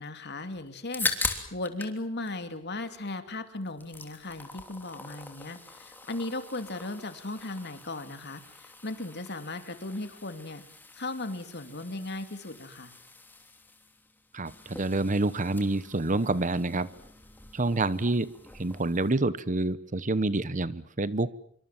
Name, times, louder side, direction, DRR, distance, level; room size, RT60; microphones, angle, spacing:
voice 1, 0.0-10.6 10.9-12.9, left 2 dB, 55° left, 9 dB, 2.8 m, -37 dB
sound 1, 0.7-2.0 2.3-3.3 3.6-19.1, left 3 dB, 10° left, 3.2 m, -41 dB
voice 2, 14.3-16.9 17.5-21.3, right 2 dB, 40° right, 17 dB, 1.0 m, -28 dB
26.0 x 24.0 x 7.6 m, 0.63 s
head